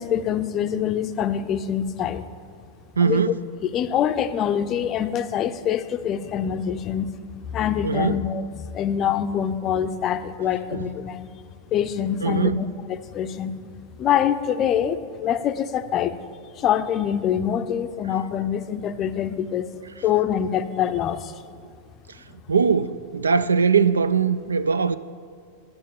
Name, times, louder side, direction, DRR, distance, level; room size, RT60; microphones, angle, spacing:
voice 1, 0.0-2.3 3.0-3.2 3.6-7.1 7.5-11.3 11.7-13.5 14.0-16.1 16.6-19.7 20.0-21.3, left 9 dB, 30° left, 0.5 m, -25 dB
voice 2, 3.0-3.4 7.8-8.2 10.7-10.8 12.2-12.7 22.5-25.0, right 5 dB, 75° right, 0.3 m, -21 dB
10.5 x 6.3 x 7.2 m
figure-of-eight pair, 90°, 0 cm